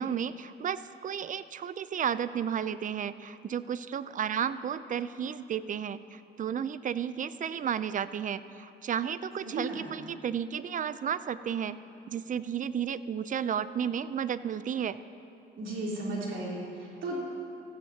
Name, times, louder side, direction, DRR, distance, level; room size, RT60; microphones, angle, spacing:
voice 1, 0.0-11.8 12.1-15.0, right 8 dB, 40° right, 14 dB, 0.5 m, -33 dB
voice 2, 9.4-10.0 15.6-17.2, right 2 dB, 75° right, -5 dB, 3.5 m, -35 dB
16.0 x 14.5 x 2.9 m, 2.7 s
cardioid pair, 90°, 20 cm